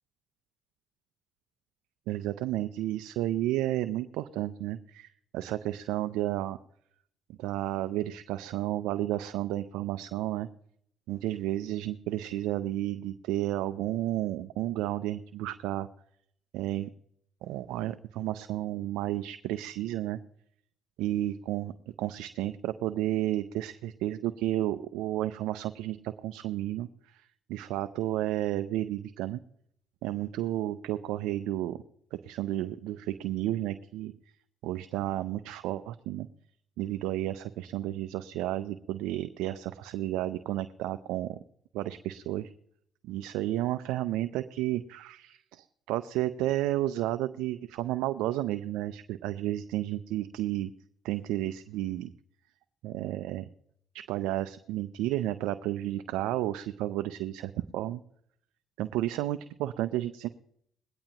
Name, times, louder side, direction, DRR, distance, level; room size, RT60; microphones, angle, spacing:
voice 1, 2.1-6.6 7.4-10.5 11.1-15.9 16.5-16.9 17.4-20.2 21.0-21.7 22.0-29.4 30.0-31.8 32.1-34.1 34.6-36.3 36.8-41.4 41.7-42.5 43.0-50.7 51.0-52.1 52.8-53.5 54.1-58.0 58.8-60.3, right 14 dB, 85° right, 10 dB, 0.5 m, -32 dB
20.0 x 17.0 x 2.9 m, 0.68 s
supercardioid pair, 60°, 0 cm